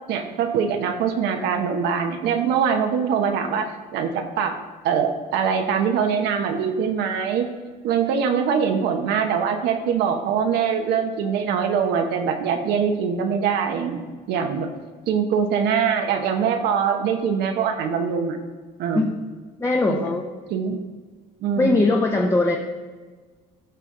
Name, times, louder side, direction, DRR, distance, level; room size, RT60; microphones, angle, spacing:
voice 1, 0.1-4.5 4.8-7.5 7.8-14.7 15.1-18.4 18.8-19.1 19.9-20.1 20.5-20.8 21.4-21.9, right 7 dB, 85° right, 4 dB, 0.9 m, -23 dB
voice 2, 19.6-20.3 21.6-22.6, left 2 dB, 15° left, 1 dB, 0.8 m, -20 dB
14.5 x 5.7 x 3.7 m, 1.4 s
cardioid pair, 110°, 17 cm